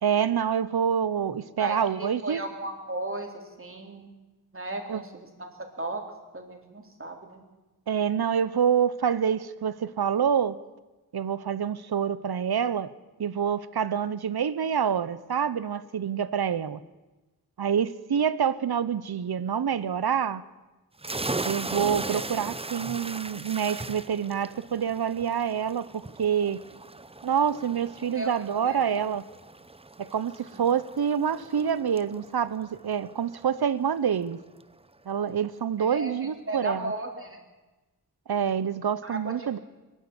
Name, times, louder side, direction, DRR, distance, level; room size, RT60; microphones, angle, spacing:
voice 1, 0.0-2.4 4.9-5.0 7.9-10.6 11.1-12.9 13.2-16.8 17.6-20.4 21.4-26.6 27.2-29.2 30.0-34.4 35.1-36.9 38.3-39.6, right 8 dB, 70° right, 16 dB, 1.0 m, -27 dB
voice 2, 1.6-4.1 4.5-6.0 6.3-7.4 22.1-22.3 28.1-28.3 28.6-28.8 30.5-30.7 35.8-37.4 39.0-39.6, right 2 dB, 35° right, 3 dB, 3.7 m, -36 dB
sound 1, 21.0-34.3, right 2 dB, 15° right, 0.7 m, -38 dB
23.0 x 12.5 x 9.7 m, 1.2 s
wide cardioid pair, 90°, 39 cm